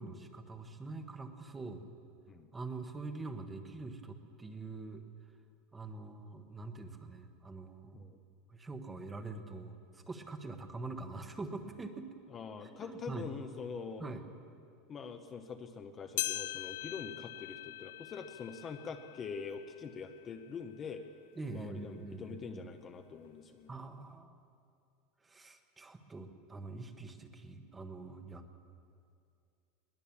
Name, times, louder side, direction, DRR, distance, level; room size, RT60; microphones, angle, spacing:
voice 1, 0.0-1.8 2.5-5.0 5.7-8.1 8.5-12.1 12.6-13.3 14.0-14.2 21.4-22.6 23.7-24.4 25.2-28.6, right 3 dB, 10° right, 7 dB, 1.1 m, -44 dB
voice 2, 12.3-14.0 14.9-21.0 21.5-23.7, left 5 dB, 20° left, 6 dB, 0.8 m, -44 dB
sound 1, 16.2-20.8 21.3-21.4 22.2-22.3 23.2-23.3, left 16 dB, 70° left, 0.6 m, -42 dB
21.5 x 20.0 x 7.2 m, 2.4 s
supercardioid pair, 175°, 0 cm